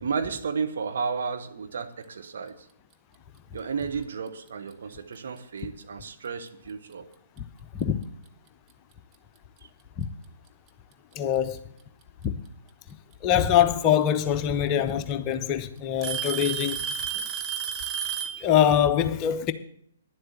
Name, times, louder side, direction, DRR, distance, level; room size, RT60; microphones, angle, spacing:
voice 1, 0.0-2.6 3.5-7.1 9.6-9.7, right 5 dB, 60° right, 1.2 m, -32 dB
Alarm / Tick-tock, 4.5-4.7 5.6-5.7 6.5-6.6 8.3-8.4 9.6-9.7 10.9-11.4 13.1-13.2 14.5-14.6 14.9-15.3 16.0-18.4, right 8 dB, 25° right, 1.0 m, -31 dB
voice 2, 11.1-11.6 12.2-12.4 13.2-16.9 18.4-19.5, left 10 dB, 25° left, 0.8 m, -23 dB
10.5 x 7.7 x 7.5 m
figure-of-eight pair, 125°, 0 cm